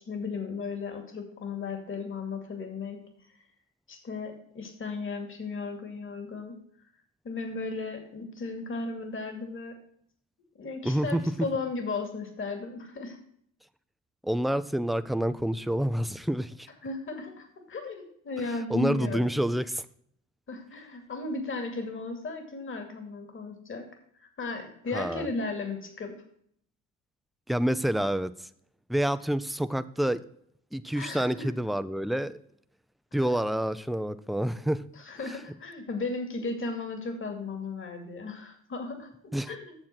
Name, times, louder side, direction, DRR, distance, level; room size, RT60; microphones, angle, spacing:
voice 1, 0.1-3.0 3.9-6.5 7.2-9.7 10.5-13.2 16.8-19.4 20.5-23.8 24.1-26.1 30.9-31.5 33.2-33.4 35.0-39.1 39.5-39.7, left 3 dB, 40° left, 6 dB, 2.6 m, -35 dB
voice 2, 10.8-11.2 14.2-16.7 18.7-19.8 24.9-25.3 27.5-28.3 28.9-30.2 30.7-32.4 33.1-34.8 39.3-39.5, right 1 dB, ahead, 13 dB, 0.5 m, -28 dB
8.9 x 7.3 x 5.9 m, 0.67 s
cardioid pair, 90°, 30 cm